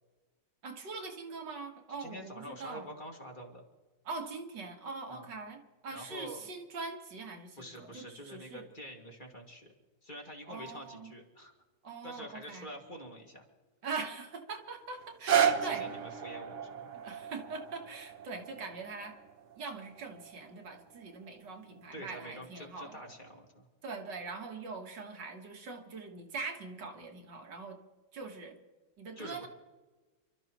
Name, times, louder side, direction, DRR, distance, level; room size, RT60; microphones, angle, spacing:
voice 1, 0.6-2.9 4.1-8.7 10.5-11.1 11.8-12.7 13.8-15.9 16.9-19.2 19.6-23.1 23.8-27.8 28.1-28.6 29.0-29.5, right 4 dB, 75° right, 3 dB, 2.2 m, -42 dB
voice 2, 2.0-3.6 5.1-5.3 5.9-6.4 7.6-9.7 10.0-11.5 12.0-13.4 15.2-16.9 21.9-23.7 29.2-29.5, equal, 25° left, 0 dB, 2.3 m, -46 dB
sound 1, 15.0-21.1 21.8-21.9, right 8 dB, 50° right, 1.0 m, -34 dB
28.5 x 13.0 x 3.0 m, 1.3 s
omnidirectional pair, 1.9 m